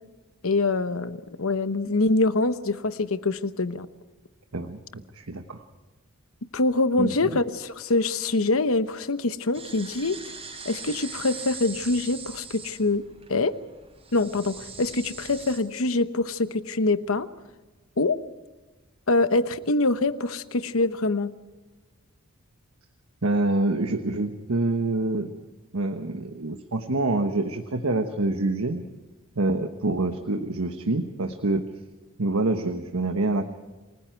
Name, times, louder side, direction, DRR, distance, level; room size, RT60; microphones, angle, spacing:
voice 1, 0.4-3.9 6.5-10.2 10.6-13.0 13.3-13.6 14.1-17.3 18.0-18.2 19.1-21.3, left 2 dB, 75° left, 12 dB, 1.0 m, -24 dB
voice 2, 4.5-5.6 7.0-7.1 23.2-25.3 25.7-28.8 29.4-31.7 32.2-33.5, right 2 dB, 80° right, 6 dB, 1.2 m, -26 dB
sound 1, 9.5-15.6, right 5 dB, 25° right, 3.9 m, -41 dB
28.5 x 20.0 x 4.6 m, 1.2 s
head